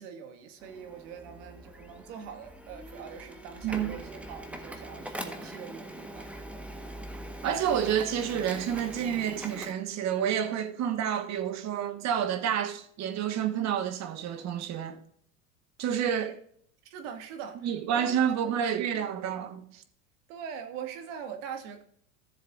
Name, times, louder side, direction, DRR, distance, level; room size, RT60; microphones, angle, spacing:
voice 1, 0.0-6.3 16.2-16.3 16.8-17.7 17.9-18.6 20.3-21.8, right 7 dB, 65° right, 2.0 m, -43 dB
Printer, 0.6-9.7, right 1 dB, 5° right, 1.3 m, -42 dB
voice 2, 7.4-15.0 15.8-16.3 17.6-19.8, right 9 dB, 40° right, 1.3 m, -29 dB
14.0 x 7.3 x 2.4 m
hypercardioid pair, 95°, 40 cm